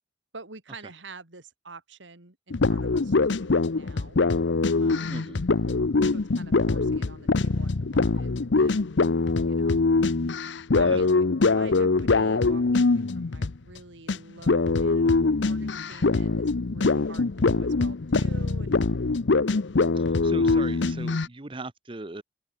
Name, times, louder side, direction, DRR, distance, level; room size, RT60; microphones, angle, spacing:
voice 1, 0.3-4.2 4.8-5.3 6.0-8.9 9.5-9.8 10.7-18.9 20.6-21.1, right 3 dB, 85° right, 3.0 m, -47 dB
sound 1, 2.5-13.8 14.1-14.2 14.5-21.3, left 3 dB, 75° left, 0.7 m, -23 dB
voice 2, 5.1-5.4 10.8-11.0 19.9-22.2, right 2 dB, 30° right, 0.9 m, -39 dB
open air
head